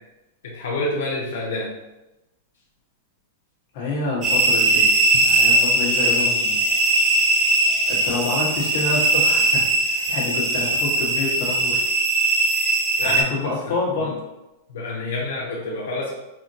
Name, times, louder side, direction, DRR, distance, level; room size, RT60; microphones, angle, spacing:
voice 1, 0.4-1.7 13.0-13.2 14.0-14.1 14.7-16.1, left 2 dB, 85° left, -5 dB, 0.7 m, -27 dB
voice 2, 3.7-4.9 5.2-6.6 7.9-11.8 13.0-14.1, left 3 dB, 50° left, -5 dB, 1.2 m, -27 dB
sound 1, 4.2-13.2, right 2 dB, 20° right, 0.6 m, -20 dB
4.2 x 2.1 x 2.7 m, 0.98 s
supercardioid pair, 150°, 0 cm